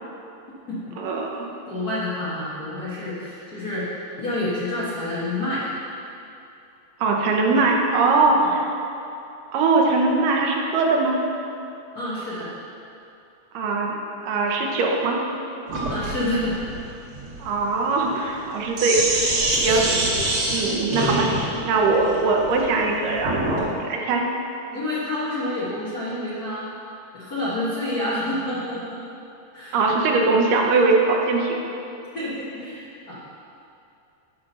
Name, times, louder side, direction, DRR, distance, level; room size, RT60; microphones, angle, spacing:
voice 1, 1.0-1.5 7.0-8.7 9.5-11.2 13.5-14.0 14.2-15.2 17.4-19.3 19.6-19.8 20.5-21.3 21.6-24.3 29.7-31.6, right 3 dB, 80° right, 0 dB, 2.5 m, -21 dB
voice 2, 1.7-5.7 11.9-12.5 15.9-16.6 19.6-19.8 22.0-22.1 24.7-26.7 27.1-29.0 29.5-29.8 32.1-33.2, left 1 dB, 85° left, -9 dB, 0.8 m, -28 dB
Sink (filling or washing), 15.7-23.7, right 1 dB, 55° right, 1.6 m, -26 dB
11.5 x 4.3 x 5.4 m, 2.7 s
omnidirectional pair, 3.9 m